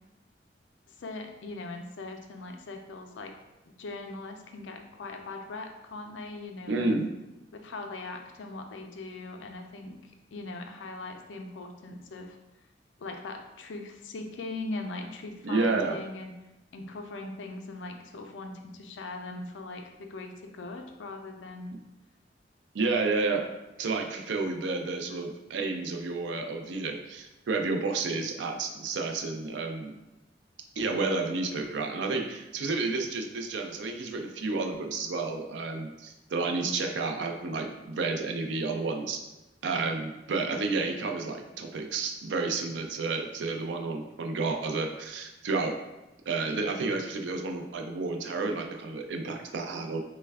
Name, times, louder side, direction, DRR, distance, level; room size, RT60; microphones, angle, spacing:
voice 1, 0.9-3.3 3.8-7.0 7.5-12.4 13.0-16.3 16.7-21.8, left 2 dB, 90° left, 4 dB, 0.4 m, -40 dB
voice 2, 6.7-7.1 15.4-16.0 22.7-23.4 23.8-29.9 30.8-39.2 39.6-45.7 46.3-50.0, right 3 dB, 75° right, 3 dB, 0.4 m, -31 dB
3.2 x 2.2 x 3.4 m, 1.0 s
head